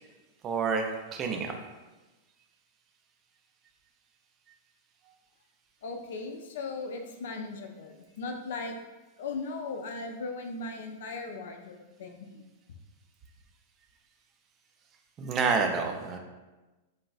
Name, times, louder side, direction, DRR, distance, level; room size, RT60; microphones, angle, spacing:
voice 1, 0.4-1.5 15.2-16.2, right 5 dB, 25° right, 3 dB, 0.3 m, -28 dB
voice 2, 5.8-8.8 9.2-12.4, left 3 dB, 55° left, 5 dB, 0.3 m, -38 dB
3.2 x 2.3 x 2.4 m, 1.1 s
figure-of-eight pair, 95°, 0 cm